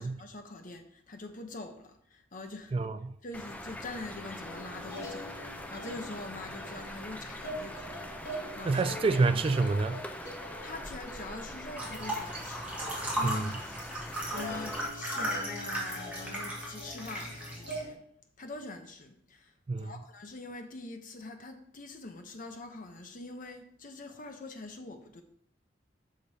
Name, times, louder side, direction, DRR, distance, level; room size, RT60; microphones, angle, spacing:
voice 1, 0.0-2.7 3.2-9.0 10.6-14.0 14.2-18.0 18.4-19.5 19.8-25.2, left 2 dB, 45° left, 0.9 m, -44 dB
sound 1, 3.3-14.9, left 1 dB, 10° left, 0.6 m, -43 dB
sound 2, 4.4-13.2 13.5-13.9 14.3-17.9, equal, 65° left, 2.7 m, -44 dB
voice 2, 8.7-10.0 13.2-13.3 19.7-19.9, right 3 dB, 30° right, 0.3 m, -27 dB
sound 3, 11.8-17.8, right 1 dB, 5° right, 1.8 m, -36 dB
6.5 x 5.1 x 4.2 m
head